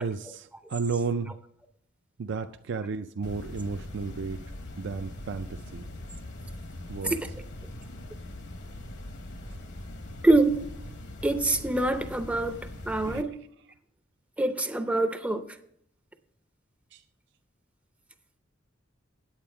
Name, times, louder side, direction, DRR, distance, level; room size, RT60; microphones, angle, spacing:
voice 1, 0.0-1.4 2.2-4.4 4.8-5.9 6.9-7.2 13.1-13.2 16.9-17.0, right 4 dB, 65° right, 7 dB, 0.4 m, -33 dB
sound 1, 3.2-13.2, left 1 dB, 60° left, 1.0 m, -41 dB
voice 2, 10.2-10.6 11.2-13.4 14.4-15.6, right 2 dB, 5° right, 8 dB, 0.5 m, -25 dB
8.9 x 8.4 x 4.8 m, 0.69 s
head